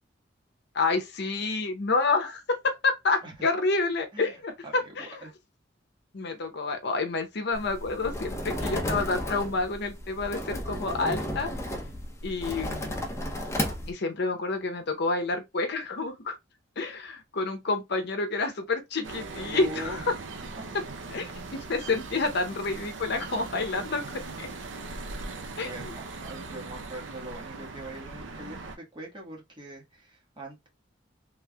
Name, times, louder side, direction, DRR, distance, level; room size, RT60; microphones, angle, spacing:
voice 1, 0.7-5.2 6.1-11.5 12.2-13.0 13.9-16.4 16.8-20.0 21.1-24.5 25.6-25.9, left 3 dB, 65° left, 0.7 m, -29 dB
sound 1, 7.5-13.9, left 1 dB, 15° left, 0.7 m, -33 dB
sound 2, 19.0-28.8, right 3 dB, 85° right, 0.6 m, -40 dB
voice 2, 19.3-20.0 25.1-30.7, right 1 dB, 25° right, 1.3 m, -42 dB
3.3 x 3.1 x 2.2 m
head